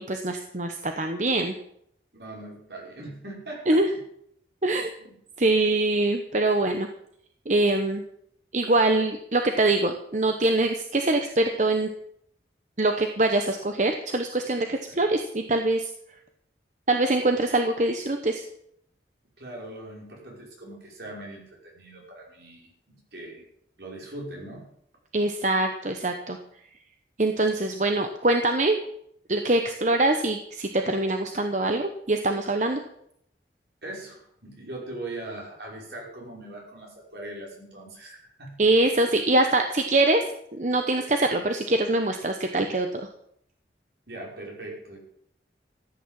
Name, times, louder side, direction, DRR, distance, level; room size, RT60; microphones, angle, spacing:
voice 1, 0.0-1.5 3.7-3.9 4.6-4.9 5.4-6.9 7.5-8.0 8.5-11.9 12.8-15.9 16.9-18.4 25.1-26.4 27.2-28.8 29.3-32.8 38.6-40.2 40.5-43.0, right 2 dB, 45° right, 5 dB, 1.0 m, -23 dB
voice 2, 2.1-3.8 5.0-5.1 14.9-15.1 19.4-22.7 23.1-23.4 23.8-24.7 33.8-38.6 44.1-45.0, right 2 dB, 70° right, -2 dB, 5.6 m, -40 dB
14.5 x 9.3 x 7.6 m, 0.71 s
head